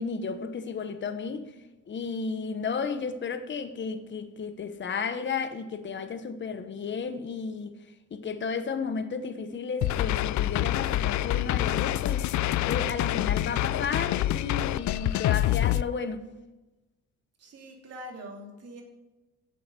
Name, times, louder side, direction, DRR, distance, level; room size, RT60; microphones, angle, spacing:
voice 1, 0.0-1.5 1.9-7.7 8.1-12.3 12.6-16.2, left 5 dB, 40° left, 1.0 m, -33 dB
sound 1, 9.8-15.8, left 14 dB, 70° left, 0.5 m, -26 dB
voice 2, 17.4-18.8, equal, 55° right, 2.9 m, -43 dB
7.8 x 7.8 x 6.6 m
cardioid pair, 90°, 30 cm